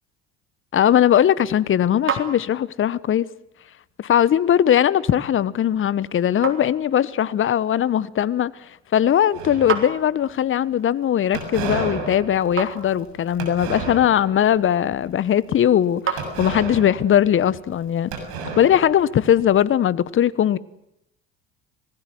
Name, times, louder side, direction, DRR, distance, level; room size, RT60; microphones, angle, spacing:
voice 1, 0.7-3.2 4.0-8.5 8.9-18.1 18.6-20.6, left 10 dB, 40° left, 1.2 m, -19 dB
sound 1, 1.1-16.9, right 6 dB, 35° right, 4.0 m, -36 dB
sound 2, 9.3-10.1 11.3-14.4 14.8-15.2 16.2-17.8 18.1-19.4, right 4 dB, 65° right, 7.2 m, -32 dB
26.5 x 19.5 x 7.8 m
hypercardioid pair, 65°, 33 cm